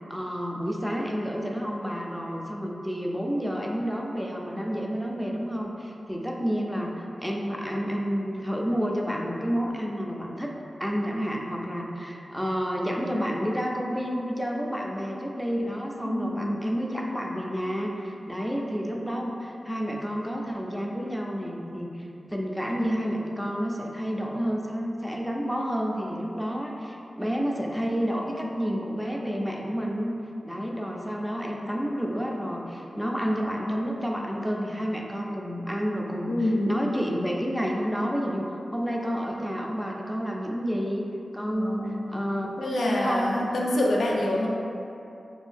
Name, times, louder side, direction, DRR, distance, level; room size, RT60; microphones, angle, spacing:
voice 1, 0.1-21.9 22.3-30.1 30.4-41.0 41.3-43.5 44.3-44.4, equal, 5° right, -1 dB, 0.4 m, -30 dB
voice 2, 16.0-16.6 36.3-36.9 41.5-42.0 42.6-44.5, left 1 dB, 85° left, -3 dB, 0.4 m, -26 dB
2.6 x 2.6 x 3.4 m, 2.7 s
cardioid pair, 55°, 0 cm